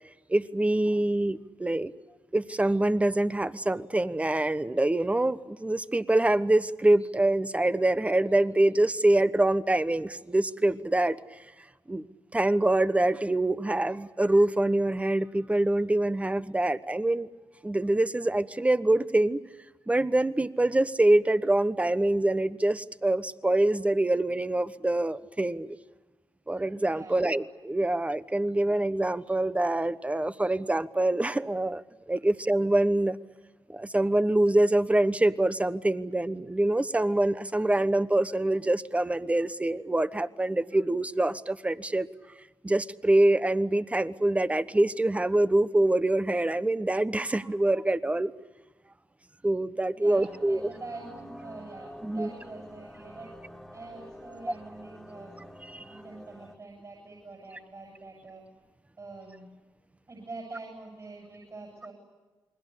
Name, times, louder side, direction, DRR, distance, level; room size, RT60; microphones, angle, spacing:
voice 1, 0.3-1.9 2.3-11.2 11.9-12.0 12.3-17.3 17.6-19.4 19.9-25.8 26.5-31.8 32.1-33.2 33.7-42.1 42.6-48.3 49.4-50.7 52.0-52.3 55.7-55.8, right 1 dB, 15° right, 14 dB, 1.1 m, -25 dB
voice 2, 26.9-27.3 50.0-55.5 55.9-58.4 59.0-59.5 60.1-61.9, right 3 dB, 40° right, 0 dB, 7.9 m, -45 dB
sound 1, 50.1-56.6, equal, ahead, 2.4 m, -48 dB
29.5 x 21.0 x 8.3 m, 1.2 s
cardioid pair, 60°, 8 cm